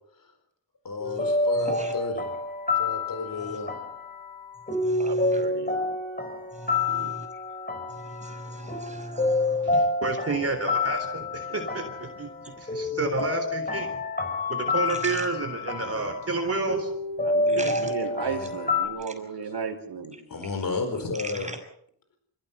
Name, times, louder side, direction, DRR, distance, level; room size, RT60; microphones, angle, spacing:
voice 1, 0.8-2.2 2.7-3.7 18.3-18.6 19.0-19.1 19.4-19.5 20.3-21.5, left 4 dB, 50° left, 6 dB, 4.4 m, -32 dB
sound 1, 1.0-18.9, left 3 dB, 20° left, 4.9 m, -28 dB
voice 2, 5.0-5.9 6.9-7.2 17.2-20.2, right 5 dB, 70° right, 4 dB, 5.0 m, -35 dB
voice 3, 8.2-9.6 17.6-17.8 21.5-21.6, right 1 dB, 15° right, 5 dB, 6.1 m, -38 dB
voice 4, 9.6-14.0 14.5-16.9 17.6-17.7, right 3 dB, 35° right, 4 dB, 3.7 m, -30 dB
28.5 x 16.5 x 6.9 m, 0.70 s
wide cardioid pair, 110°, 41 cm